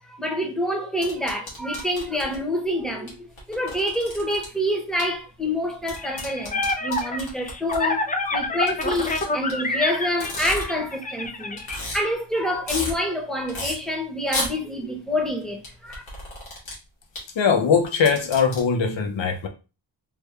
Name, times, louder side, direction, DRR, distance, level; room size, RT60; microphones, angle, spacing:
voice 1, 0.2-3.2 3.5-8.0 8.3-16.0, equal, ahead, 1.0 m, -27 dB
sound 1, 1.0-2.4 3.1-3.2 3.4-4.4 5.0-5.1 5.9-7.8 8.7-9.5 10.1-10.9 11.2-11.3 11.6-12.0 12.4-12.9 13.5-13.7 14.3-14.5 15.6-16.7 17.1-17.2 17.8-18.6, left 2 dB, 90° left, 1.6 m, -32 dB
sound 2, 6.0-11.8, left 3 dB, 20° left, 0.5 m, -27 dB
voice 2, 17.3-19.5, left 6 dB, 70° left, 0.8 m, -21 dB
3.5 x 2.3 x 3.2 m
cardioid pair, 65°, 46 cm